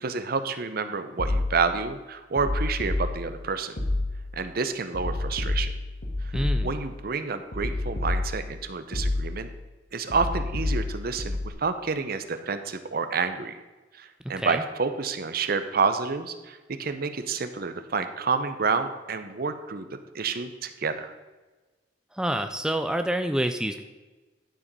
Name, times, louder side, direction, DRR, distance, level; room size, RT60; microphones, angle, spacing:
voice 1, 0.0-3.8 4.3-5.7 6.6-9.5 9.9-13.6 14.0-21.1, right 4 dB, 55° right, 9 dB, 0.7 m, -29 dB
sound 1, 1.2-1.8 2.4-3.4 3.8-4.4 4.9-7.0 7.5-8.6 8.9-9.6 10.1-11.5, left 2 dB, 75° left, 1.8 m, -29 dB
voice 2, 6.3-6.7 14.3-14.6 22.2-23.8, right 1 dB, 5° right, 7 dB, 0.4 m, -27 dB
11.5 x 5.1 x 5.4 m, 1.2 s
head